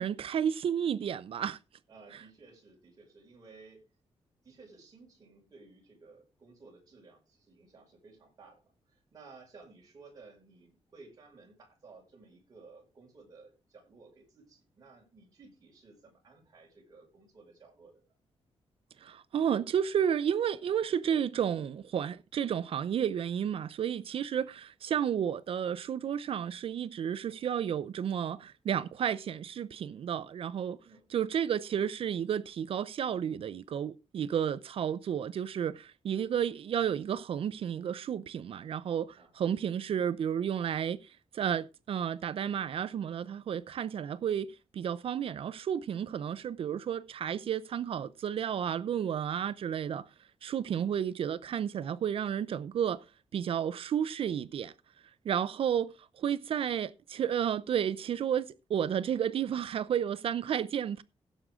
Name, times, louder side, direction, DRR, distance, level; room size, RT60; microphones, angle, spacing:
voice 1, 0.0-1.6 19.0-30.8 31.1-50.0 50.4-53.0 53.3-54.7 55.2-55.9 56.2-61.0, right 9 dB, 60° right, 0.6 m, -32 dB
voice 2, 1.9-3.9 4.4-18.0 30.8-31.0 39.2-39.3 39.6-39.7 46.1-46.2 50.7-50.9, right 4 dB, 35° right, 5.8 m, -56 dB
16.5 x 7.6 x 3.6 m
wide cardioid pair, 180°, 11 cm